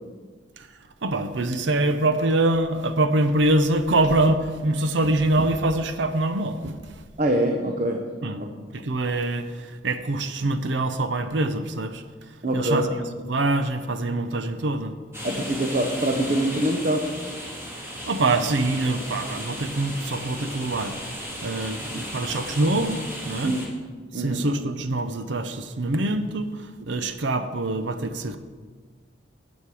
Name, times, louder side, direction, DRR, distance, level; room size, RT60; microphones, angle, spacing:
voice 1, 1.0-6.9 8.2-8.4 8.7-12.0 12.5-12.9 13.2-14.9 18.1-23.6 24.1-28.4, right 2 dB, 75° right, 9 dB, 0.7 m, -24 dB
voice 2, 7.2-8.0 8.3-8.5 12.4-12.9 15.2-17.1 23.4-23.7 24.1-24.4, right 1 dB, 45° right, 2 dB, 0.9 m, -24 dB
sound 1, 15.1-23.7, equal, 15° right, 2.2 m, -35 dB
12.5 x 7.3 x 4.8 m, 1.5 s
head